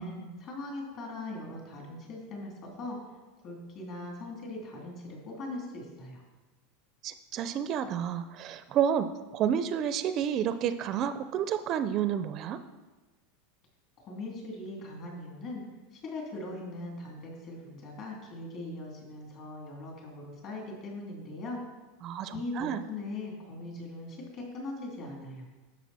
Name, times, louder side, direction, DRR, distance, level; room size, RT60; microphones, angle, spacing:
voice 1, 0.0-3.0 3.4-6.2 14.0-15.6 15.9-21.6 22.3-25.5, left 2 dB, 40° left, -1 dB, 2.9 m, -40 dB
voice 2, 7.0-9.1 9.3-12.6 22.0-22.8, right 9 dB, 35° right, 11 dB, 0.4 m, -30 dB
10.5 x 6.9 x 4.2 m, 1.2 s
supercardioid pair, 150°, 0 cm